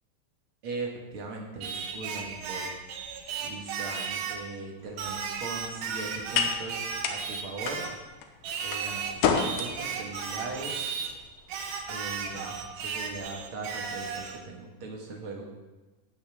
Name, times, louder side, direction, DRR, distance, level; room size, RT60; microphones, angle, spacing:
voice 1, 0.6-2.7 3.4-7.9 8.6-10.9 11.9-15.5, right 3 dB, 50° right, 0 dB, 1.8 m, -39 dB
Singing, 1.6-4.5 5.0-8.0 8.4-11.1 11.5-14.4, right 6 dB, 85° right, 2.9 m, -35 dB
sound 1, 4.8-13.2, left 6 dB, 75° left, 2.4 m, -34 dB
15.5 x 9.0 x 3.5 m, 1.2 s
omnidirectional pair, 4.1 m